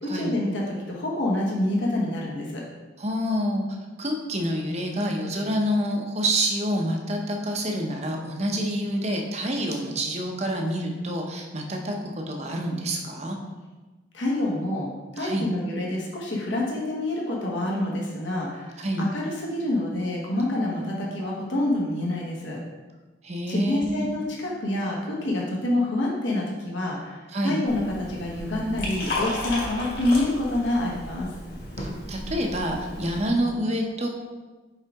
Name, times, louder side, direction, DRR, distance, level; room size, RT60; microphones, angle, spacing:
voice 1, 0.0-2.6 14.1-22.6 23.5-31.3, left 1 dB, 70° left, -3 dB, 1.1 m, -27 dB
voice 2, 3.0-13.4 15.2-15.5 18.8-19.1 23.2-24.1 27.3-27.6 31.8-34.1, equal, 35° right, 2 dB, 0.7 m, -27 dB
Liquid, 27.7-33.3, left 1 dB, 50° left, 1.5 m, -34 dB
5.6 x 4.9 x 3.5 m, 1.2 s
head